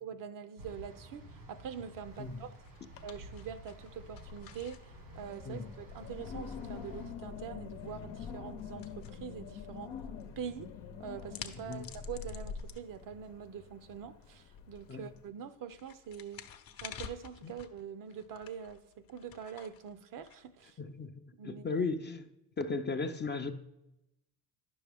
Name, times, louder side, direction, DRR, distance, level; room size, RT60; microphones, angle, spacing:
voice 1, 0.0-2.5 3.0-9.9 10.4-10.7 11.0-16.4 16.8-20.8 21.3-21.8, right 7 dB, 50° right, 0.6 m, -44 dB
sound 1, 0.6-7.1, right 1 dB, 90° right, 2.2 m, -52 dB
sound 2, 1.8-21.0, left 8 dB, 55° left, 0.8 m, -53 dB
Wind, 2.1-2.5 2.9-3.4 3.8-15.2, left 6 dB, 80° left, 0.9 m, -46 dB
voice 2, 20.8-22.3 22.6-23.5, left 4 dB, 25° left, 0.5 m, -36 dB
9.8 x 6.2 x 3.4 m
supercardioid pair, 80°, 42 cm